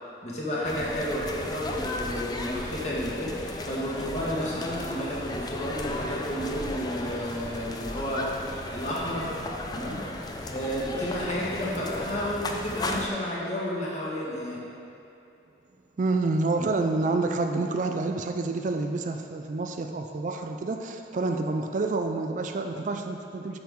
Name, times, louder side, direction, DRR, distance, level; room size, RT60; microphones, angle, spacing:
voice 1, 0.2-9.4 9.7-10.0 10.5-14.6, equal, 40° left, -6 dB, 1.5 m, -31 dB
sound 1, 0.6-13.1, left 1 dB, 25° left, 0.5 m, -35 dB
voice 2, 16.0-23.6, right 3 dB, 45° right, 5 dB, 0.4 m, -28 dB
8.7 x 5.9 x 3.6 m, 2.7 s
head